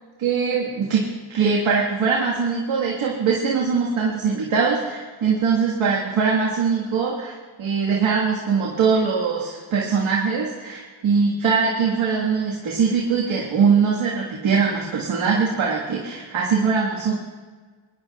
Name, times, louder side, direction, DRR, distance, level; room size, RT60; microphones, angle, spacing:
voice 1, 0.2-17.1, right 5 dB, 80° right, -4 dB, 1.9 m, -22 dB
22.5 x 10.5 x 2.5 m, 1.5 s
cardioid pair, 75°, 48 cm